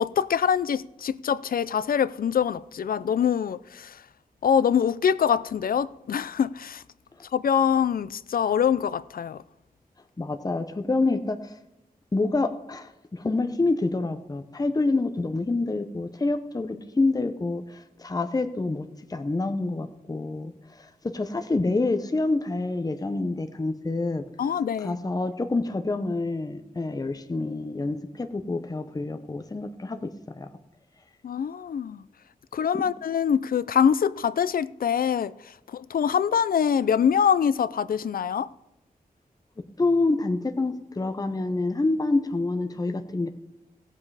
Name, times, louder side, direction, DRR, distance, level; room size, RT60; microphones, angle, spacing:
voice 1, 0.0-4.0 4.4-6.8 7.3-9.4 24.4-25.0 31.2-32.0 32.5-38.5, left 8 dB, 75° left, 0.5 m, -24 dB
voice 2, 10.2-11.6 12.1-24.2 24.8-30.1 30.3-30.5 39.8-43.3, left 3 dB, 25° left, 0.8 m, -27 dB
17.5 x 7.6 x 4.8 m
wide cardioid pair, 95°, 15 cm